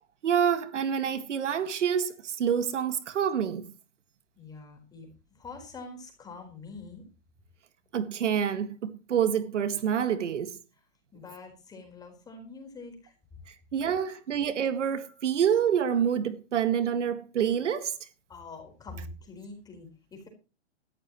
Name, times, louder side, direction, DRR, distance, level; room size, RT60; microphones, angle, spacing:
voice 1, 0.2-3.6 7.9-10.5 13.7-17.9, right 8 dB, 80° right, 2.0 m, -27 dB
voice 2, 4.4-7.0 11.1-13.1 15.1-15.2 18.3-20.3, left 3 dB, 10° left, 4.5 m, -45 dB
17.5 x 14.0 x 3.1 m
hypercardioid pair, 160°, 36 cm